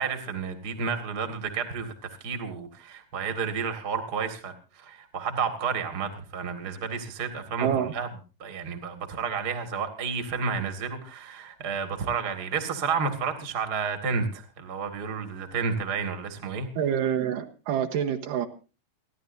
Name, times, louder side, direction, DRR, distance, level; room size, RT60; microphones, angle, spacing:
voice 1, 0.0-7.7 7.9-8.1 8.4-16.7, right 5 dB, 35° right, 2.0 m, -31 dB
voice 2, 7.6-7.9 16.8-18.5, right 9 dB, 80° right, 2.7 m, -27 dB
29.0 x 11.5 x 2.6 m
omnidirectional pair, 3.9 m